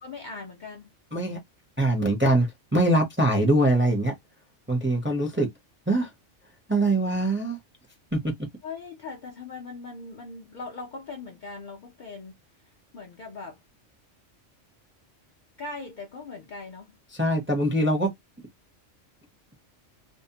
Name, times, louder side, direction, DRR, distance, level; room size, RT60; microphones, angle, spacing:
voice 1, 0.0-0.9 8.6-12.3 12.9-13.6 15.6-17.0, left 3 dB, 55° left, 0.6 m, -40 dB
voice 2, 1.8-4.2 4.7-5.5 5.9-6.1 6.7-7.6 8.1-8.3 17.1-18.1, right 1 dB, 10° right, 0.6 m, -23 dB
2.7 x 2.0 x 2.7 m
omnidirectional pair, 1.3 m